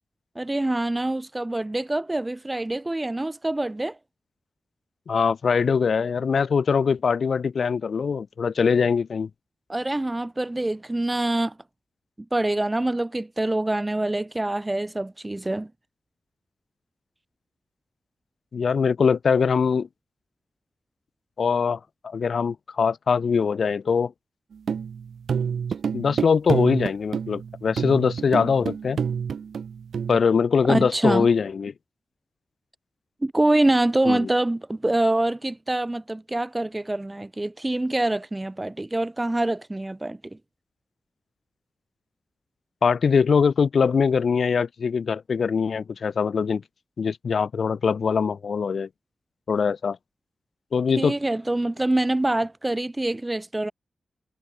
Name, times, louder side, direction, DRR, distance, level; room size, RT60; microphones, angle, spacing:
voice 1, 0.3-4.0 9.7-11.5 12.3-15.7 30.7-31.3 33.2-40.2 51.0-53.7, right 1 dB, 15° right, 4.6 m, -25 dB
voice 2, 5.1-9.3 18.5-19.9 21.4-24.1 25.9-29.0 30.1-31.7 34.1-34.3 42.8-46.6 47.0-48.9 49.5-50.0 50.7-51.1, left 6 dB, 65° left, 2.6 m, -22 dB
sound 1, 24.5-30.2, right 7 dB, 80° right, 3.0 m, -28 dB
wide cardioid pair, 110°, 0 cm